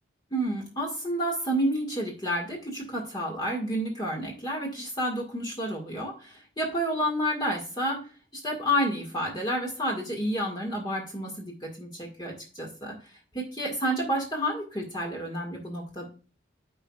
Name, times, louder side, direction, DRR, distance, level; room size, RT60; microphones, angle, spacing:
voice 1, 0.3-8.0 8.4-13.0 13.3-16.1, equal, 25° left, -1 dB, 1.9 m, -30 dB
14.0 x 4.8 x 2.4 m, 0.36 s
head